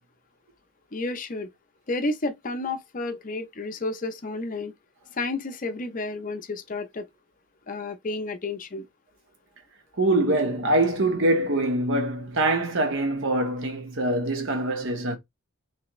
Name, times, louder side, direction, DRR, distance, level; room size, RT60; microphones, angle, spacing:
voice 1, 0.9-1.5 1.9-4.7 5.1-7.1 7.7-8.8, left 2 dB, 35° left, 0.6 m, -31 dB
voice 2, 10.0-15.2, right 1 dB, 60° right, 1.0 m, -24 dB
3.3 x 3.3 x 3.0 m
head